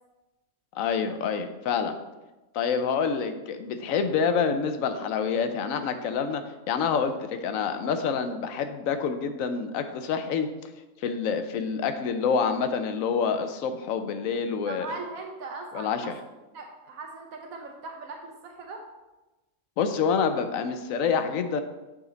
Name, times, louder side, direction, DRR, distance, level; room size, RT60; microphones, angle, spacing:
voice 1, 0.7-2.0 2.5-10.5 11.0-14.9 15.7-16.2 19.8-21.6, left 6 dB, 75° left, 8 dB, 1.0 m, -27 dB
voice 2, 14.7-16.1 16.5-18.8, right 3 dB, 80° right, 2 dB, 1.2 m, -39 dB
8.4 x 4.2 x 3.9 m, 1.1 s
omnidirectional pair, 1.5 m